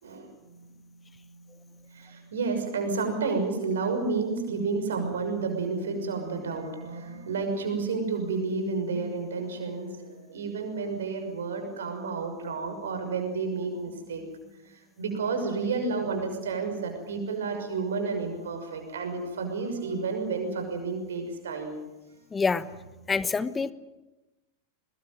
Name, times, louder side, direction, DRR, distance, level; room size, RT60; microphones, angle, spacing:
voice 1, 0.0-21.8, right 4 dB, 65° right, 5 dB, 6.2 m, -31 dB
voice 2, 22.3-22.7 23.1-23.7, left 4 dB, 15° left, 16 dB, 1.1 m, -26 dB
23.0 x 21.0 x 9.2 m, 1.0 s
figure-of-eight pair, 90°, 0 cm